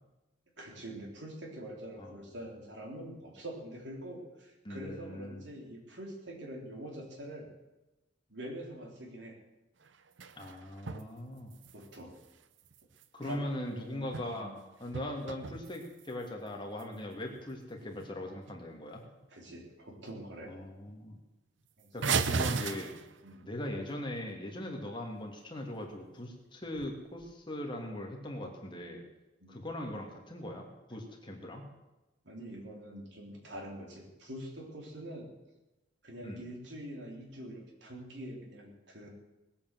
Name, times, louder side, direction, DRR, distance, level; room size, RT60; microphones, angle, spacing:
voice 1, 0.6-7.5 8.3-9.4 11.7-12.1 13.2-14.6 19.3-20.5 21.8-22.4 23.2-23.5 29.4-29.7 32.2-35.3 36.0-39.1, right 1 dB, 70° right, 0 dB, 4.0 m, -45 dB
voice 2, 4.6-5.5 10.4-11.5 13.1-14.5 14.8-19.0 20.4-21.2 21.9-22.9 23.4-29.0 29.5-31.7 36.2-36.4, left 1 dB, 25° left, 1 dB, 2.6 m, -40 dB
sound 1, 9.8-11.1 11.4-13.3 13.9-14.6 14.8-16.3 16.8-16.9 17.3-17.5 17.9-18.1 18.4-18.8 19.2-19.7 20.1-20.2 20.5-20.6 20.9-21.0 22.0-23.4 26.6-27.3, right 5 dB, 85° right, 0.8 m, -37 dB
19.5 x 8.6 x 7.8 m, 1.0 s
head